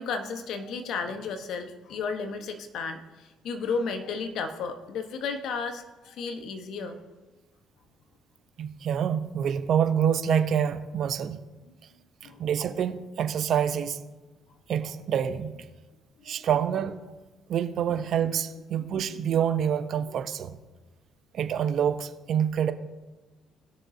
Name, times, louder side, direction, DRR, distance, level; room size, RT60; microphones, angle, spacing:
voice 1, 0.0-3.0 3.4-7.0 12.2-12.4 16.3-16.5 19.0-19.1, left 5 dB, 70° left, 7 dB, 1.1 m, -33 dB
voice 2, 8.6-11.4 12.4-14.0 14.7-15.6 16.2-17.0 17.5-20.6 21.3-22.7, right 8 dB, 60° right, 10 dB, 0.7 m, -26 dB
19.0 x 6.5 x 2.7 m, 1.2 s
hypercardioid pair, 60°, 0 cm